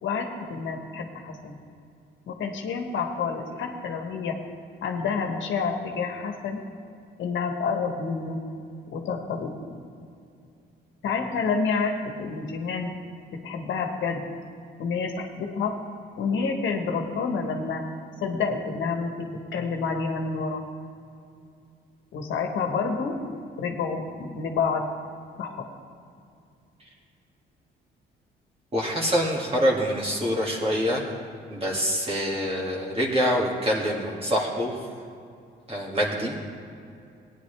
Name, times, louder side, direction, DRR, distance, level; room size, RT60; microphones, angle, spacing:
voice 1, 0.0-1.6 2.3-4.4 4.8-6.6 7.2-8.4 8.9-9.8 11.0-12.9 13.4-14.2 14.8-15.7 16.2-17.8 18.2-20.6 22.1-23.2 23.6-24.8 25.4-25.7, left 5 dB, 75° left, 3 dB, 1.4 m, -28 dB
voice 2, 28.7-31.0 31.5-34.8 35.7-36.4, equal, 30° right, -2 dB, 2.2 m, -25 dB
17.0 x 9.7 x 3.4 m, 2.4 s
cardioid pair, 90°, 20 cm